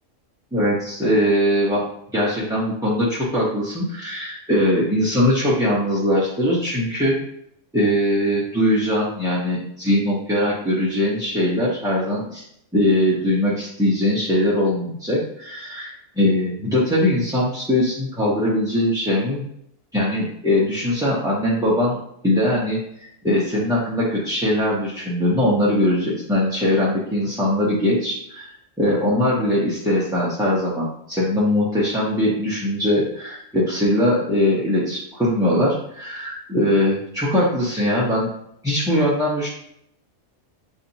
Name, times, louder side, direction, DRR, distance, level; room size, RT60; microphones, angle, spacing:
voice 1, 0.5-1.8 2.1-7.2 7.7-12.4 12.7-19.4 19.9-22.0 22.2-28.5 28.8-38.3 38.6-39.5, left 1 dB, 5° right, -8 dB, 0.6 m, -21 dB
6.9 x 2.8 x 2.7 m, 0.74 s
omnidirectional pair, 1.3 m